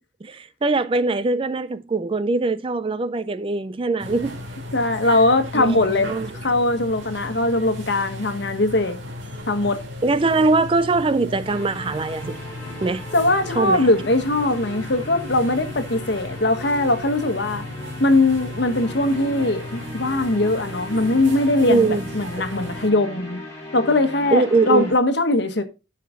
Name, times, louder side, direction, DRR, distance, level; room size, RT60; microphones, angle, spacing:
voice 1, 0.2-4.4 5.0-5.2 5.5-6.3 10.0-12.4 12.8-13.0 13.6-13.9 21.7-22.1 24.3-24.9, right 3 dB, 25° right, 0.4 m, -22 dB
sound 1, 4.0-22.9, left 1 dB, 70° right, 2.7 m, -36 dB
voice 2, 4.7-6.1 6.4-9.0 9.5-9.8 13.1-17.6 18.0-23.4 23.7-25.6, left 2 dB, 60° left, 1.3 m, -20 dB
sound 2, 11.4-24.9, left 1 dB, 15° left, 2.8 m, -38 dB
12.5 x 5.7 x 3.7 m
head